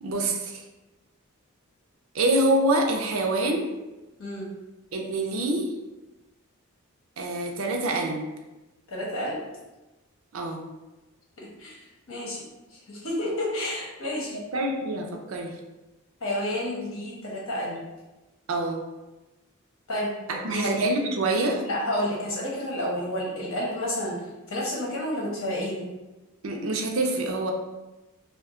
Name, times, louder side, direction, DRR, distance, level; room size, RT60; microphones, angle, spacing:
voice 1, 0.0-0.6 2.1-3.7 4.9-5.7 7.2-8.2 10.3-10.6 14.5-15.6 18.5-18.8 20.3-21.6 26.4-27.5, right 2 dB, 70° right, 2 dB, 0.5 m, -26 dB
voice 2, 4.2-4.5 8.9-9.4 11.4-12.4 12.7-14.4 16.2-17.8 19.9-20.1 20.5-20.7 21.6-24.2 24.5-25.9, left 1 dB, 75° left, -5 dB, 1.1 m, -30 dB
2.7 x 2.2 x 3.6 m, 1.1 s
head